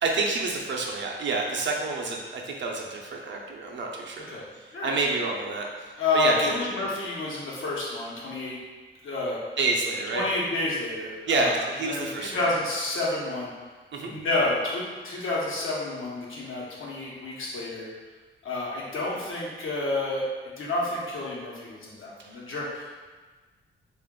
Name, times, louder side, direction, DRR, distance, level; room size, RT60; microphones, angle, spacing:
voice 1, 0.0-4.4 4.8-6.5 9.6-10.2 11.3-12.4 13.9-14.1 22.2-22.4, right 3 dB, 65° right, 0 dB, 0.6 m, -28 dB
voice 2, 6.0-8.6 9.0-9.4 10.1-13.5 14.0-17.9 18.4-20.3 20.6-23.0, left 2 dB, 85° left, -5 dB, 1.0 m, -29 dB
3.5 x 2.4 x 3.7 m, 1.4 s
wide cardioid pair, 140°, 20 cm